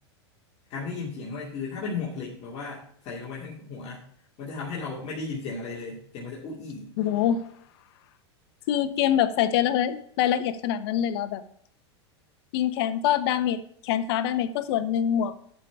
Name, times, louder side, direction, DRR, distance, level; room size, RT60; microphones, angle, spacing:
voice 1, 0.7-4.0 4.4-6.9, left 4 dB, 45° left, -4 dB, 2.6 m, -35 dB
voice 2, 7.0-7.4 8.7-11.4 12.5-15.4, left 10 dB, 65° left, 12 dB, 1.1 m, -25 dB
11.5 x 5.7 x 4.8 m, 0.66 s
hypercardioid pair, 115°, 15 cm